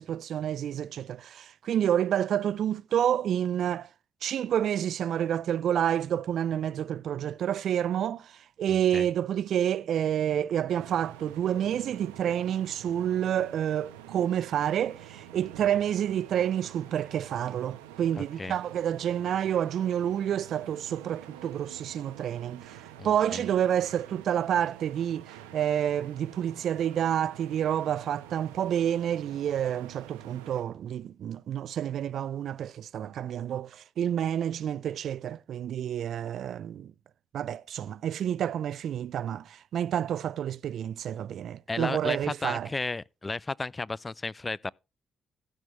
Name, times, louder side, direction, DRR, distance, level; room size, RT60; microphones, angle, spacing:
voice 1, 0.0-3.9 4.2-22.8 23.0-36.9 37.3-42.7, right 10 dB, 65° right, 0.4 m, -29 dB
voice 2, 8.7-9.1 18.2-18.6 23.0-23.4 41.7-44.7, left 3 dB, 25° left, 0.4 m, -34 dB
sound 1, 10.7-30.6, right 11 dB, 85° right, 1.1 m, -48 dB
16.5 x 6.2 x 3.2 m
hypercardioid pair, 45°, 0 cm